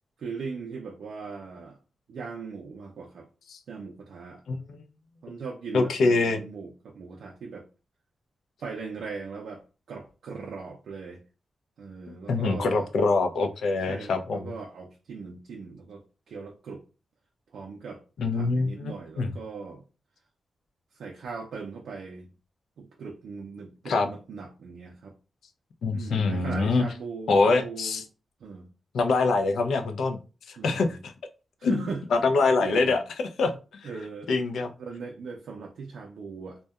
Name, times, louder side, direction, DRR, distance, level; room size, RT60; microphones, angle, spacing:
voice 1, 0.2-1.8 2.1-3.3 3.7-4.4 5.2-7.7 8.6-11.2 11.8-12.9 13.9-16.8 17.5-18.0 18.3-19.8 20.9-22.3 22.8-25.1 25.9-28.0 28.4-28.7 30.6-31.0 31.6-32.2 32.6-33.0 33.8-34.3 34.8-36.6, right 4 dB, 85° right, 1 dB, 0.4 m, -39 dB
voice 2, 5.7-6.4 12.3-14.4 18.2-19.3 23.9-24.1 25.8-26.8 27.3-28.0 28.9-30.2 30.5-31.1 31.6-31.8 32.1-33.0 33.4-33.9 34.3-34.7, left 3 dB, 85° left, 6 dB, 0.4 m, -24 dB
2.7 x 2.1 x 2.3 m, 0.32 s
wide cardioid pair, 135°, 0 cm